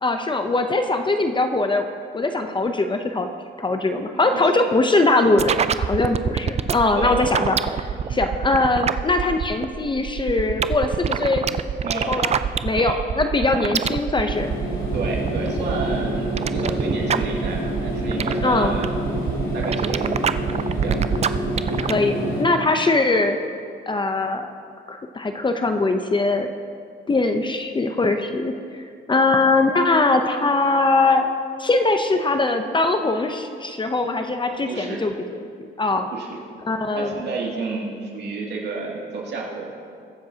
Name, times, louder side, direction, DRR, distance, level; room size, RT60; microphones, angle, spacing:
voice 1, 0.0-1.9 2.1-3.3 3.6-11.5 12.1-12.4 12.6-14.5 18.4-18.7 21.8-23.4 23.9-24.5 24.9-26.5 27.1-31.3 31.6-36.1 36.6-37.2, left 2 dB, 25° left, 6 dB, 0.7 m, -21 dB
voice 2, 4.1-4.7 6.9-7.4 8.0-8.3 11.8-12.2 12.8-13.0 14.9-19.2 19.5-20.2 20.8-21.0 21.6-21.9 22.6-22.7 34.7-35.0 36.1-36.4 37.0-39.7, right 4 dB, 60° right, -3 dB, 2.5 m, -31 dB
sound 1, 5.4-21.9, right 7 dB, 35° right, 0.4 m, -26 dB
sound 2, 14.3-22.4, equal, 75° left, 3.1 m, -27 dB
22.0 x 7.4 x 2.9 m, 2.3 s
cardioid pair, 90°, 20 cm